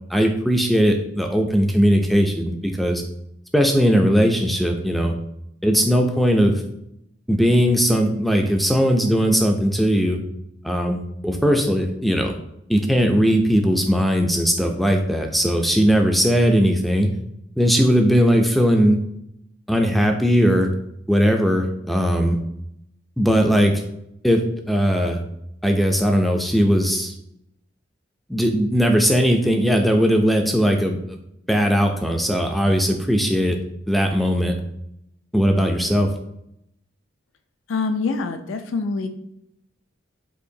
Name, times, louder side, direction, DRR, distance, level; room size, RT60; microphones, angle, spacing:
voice 1, 0.1-3.0 3.5-5.1 5.6-6.6 7.3-10.2 10.6-12.3 12.7-17.1 17.6-19.0 19.7-20.7 21.1-22.4 23.2-23.8 24.2-25.2 25.6-27.1 28.3-31.2 31.5-33.6 33.9-34.5 35.3-36.1, equal, ahead, 3 dB, 0.3 m, -19 dB
voice 2, 37.7-39.1, left 4 dB, 75° left, 8 dB, 0.3 m, -25 dB
4.4 x 2.8 x 2.6 m, 0.80 s
head